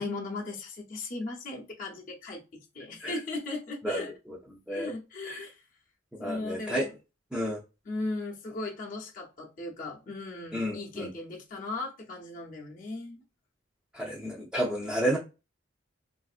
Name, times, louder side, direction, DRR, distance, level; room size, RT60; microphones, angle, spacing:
voice 1, 0.0-4.1 4.7-5.6 6.2-6.9 7.9-13.2, left 2 dB, 40° left, 0.7 m, -37 dB
voice 2, 6.2-6.9 7.3-7.6 10.5-11.1 13.9-15.2, equal, 5° right, 0.4 m, -31 dB
3.3 x 2.6 x 2.4 m
head